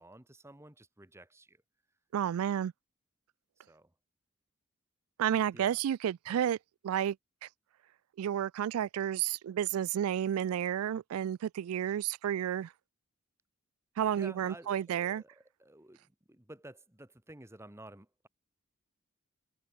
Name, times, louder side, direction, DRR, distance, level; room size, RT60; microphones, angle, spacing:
voice 1, 0.0-1.6 3.6-3.9 5.5-5.8 14.1-18.3, right 1 dB, 10° right, 1.4 m, -52 dB
voice 2, 2.1-2.7 5.2-6.6 6.8-7.2 8.2-12.7 14.0-15.2, right 10 dB, 90° right, 0.3 m, -31 dB
head